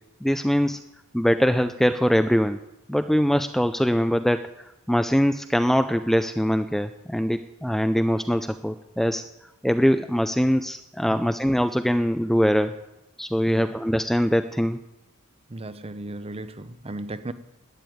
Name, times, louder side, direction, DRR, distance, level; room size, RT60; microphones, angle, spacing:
voice 1, 0.2-0.8 1.1-2.6 2.9-9.2 9.6-12.7 13.2-14.8, equal, ahead, 0.4 m, -22 dB
voice 2, 15.5-17.3, right 2 dB, 25° right, 0.7 m, -36 dB
12.5 x 8.9 x 9.3 m
head